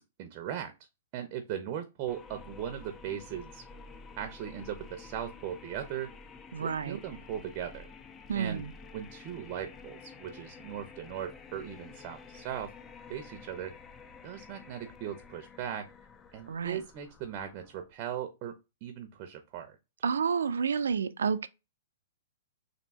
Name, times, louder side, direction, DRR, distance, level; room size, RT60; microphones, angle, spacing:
voice 1, 0.2-0.7 1.1-3.6 4.2-6.1 6.6-7.9 8.4-8.6 8.9-12.7 13.1-13.7 14.2-15.9 16.3-19.8, right 9 dB, 35° right, 0.6 m, -38 dB
sound 1, 2.1-18.0, left 4 dB, 20° left, 0.4 m, -50 dB
voice 2, 6.5-7.0 8.3-8.7 16.5-16.8 20.0-21.5, right 6 dB, 90° right, 0.4 m, -30 dB
3.5 x 2.7 x 4.0 m
hypercardioid pair, 145°, 0 cm